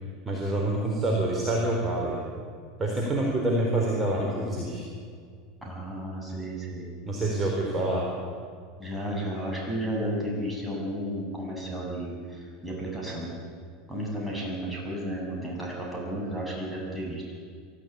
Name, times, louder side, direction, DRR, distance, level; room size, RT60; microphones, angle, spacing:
voice 1, 0.2-2.2 2.8-4.8 7.1-8.1, right 1 dB, 20° right, -2 dB, 4.1 m, -26 dB
voice 2, 5.6-6.9 8.8-13.3 13.9-17.2, right 1 dB, 5° right, -3 dB, 7.8 m, -33 dB
23.5 x 13.5 x 8.4 m, 2.1 s
figure-of-eight pair, 80°, 0 cm